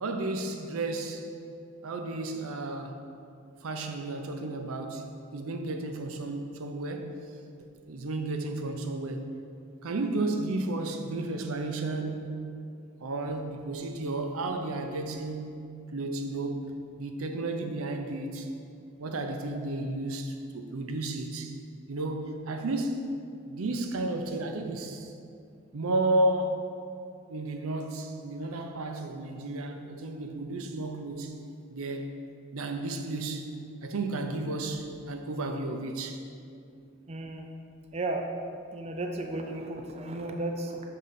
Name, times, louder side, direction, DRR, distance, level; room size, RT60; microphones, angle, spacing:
voice 1, 0.0-1.3 1.8-3.0 3.6-5.0 5.3-7.2 7.9-9.3 9.8-12.4 13.0-15.6 15.9-18.5 19.0-21.6 21.9-23.0 23.5-25.1 25.7-26.7 27.3-31.4 31.7-32.1 32.5-33.5 33.8-36.2, right 2 dB, 75° right, 5 dB, 0.6 m, -32 dB
voice 2, 37.1-37.5 37.9-38.3 38.7-40.8, right 2 dB, 30° right, 3 dB, 0.4 m, -34 dB
5.5 x 3.8 x 5.8 m, 2.5 s
head